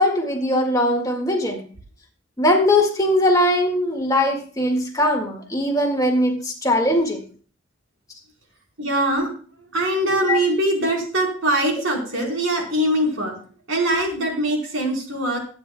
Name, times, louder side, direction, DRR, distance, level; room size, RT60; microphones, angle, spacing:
voice 1, 0.0-1.7 2.4-7.2 9.1-9.3 10.1-10.4, left 1 dB, 20° left, 1 dB, 1.8 m, -20 dB
voice 2, 8.8-9.3 9.7-13.3 13.7-15.4, right 1 dB, 85° right, 0 dB, 4.2 m, -22 dB
22.0 x 9.3 x 2.3 m, 0.41 s
head